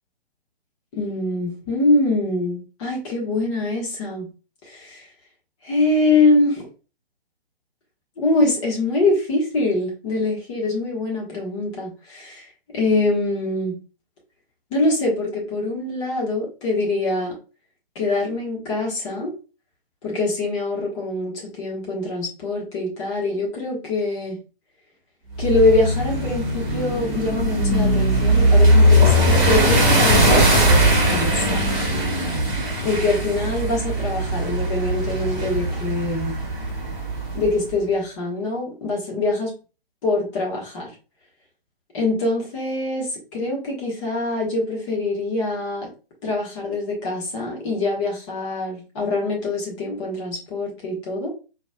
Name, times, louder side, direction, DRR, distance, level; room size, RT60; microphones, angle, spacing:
voice 1, 0.9-4.3 4.6-5.0 5.6-6.7 8.2-12.5 12.7-13.8 14.7-17.4 17.9-19.3 20.0-24.4 25.4-31.7 32.8-36.4 37.3-39.5 40.0-40.9 41.9-45.9 46.2-51.3, left 2 dB, 30° left, -2 dB, 1.4 m, -24 dB
sound 1, 25.4-37.5, equal, 15° right, 1.4 m, -19 dB
4.5 x 3.1 x 2.3 m, 0.33 s
figure-of-eight pair, 130°, 30 cm